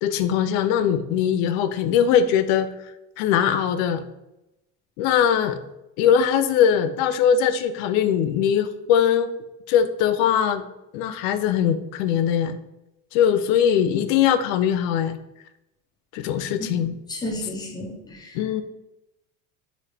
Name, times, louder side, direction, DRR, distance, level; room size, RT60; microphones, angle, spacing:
voice 1, 0.0-2.7 3.2-4.0 5.0-5.6 6.0-9.3 9.7-10.6 10.9-12.6 13.1-15.2 16.1-17.0 18.3-18.6, left 8 dB, 80° left, 11 dB, 0.5 m, -21 dB
voice 2, 17.1-18.3, left 1 dB, 10° left, 0 dB, 0.4 m, -32 dB
5.0 x 2.5 x 3.3 m, 0.92 s
cardioid pair, 160°, 40 cm